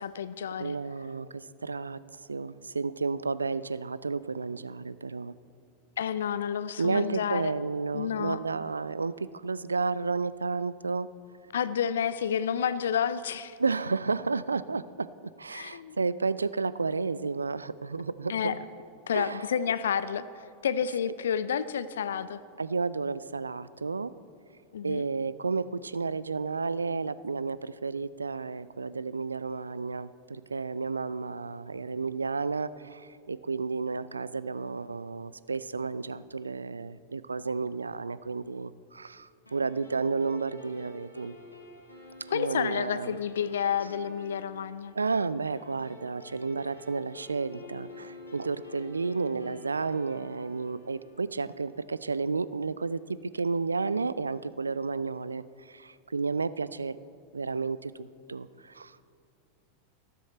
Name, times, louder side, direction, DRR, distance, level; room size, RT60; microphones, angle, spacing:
voice 1, 0.0-0.8 6.0-7.5 7.9-8.4 11.5-13.6 15.5-16.0 18.3-18.5 19.1-20.2 20.6-22.4 24.7-25.1 42.3-44.9, left 8 dB, 65° left, 15 dB, 0.4 m, -30 dB
voice 2, 0.6-2.0 2.3-5.3 6.8-11.1 13.6-15.1 15.4-18.6 19.1-19.5 22.6-24.1 24.8-41.3 42.3-43.2 45.0-57.0 57.3-59.0, right 4 dB, 75° right, 17 dB, 0.3 m, -32 dB
sound 1, 39.5-52.2, left 2 dB, 85° left, 2.0 m, -49 dB
13.5 x 12.5 x 4.3 m, 2.4 s
figure-of-eight pair, 90°, 0 cm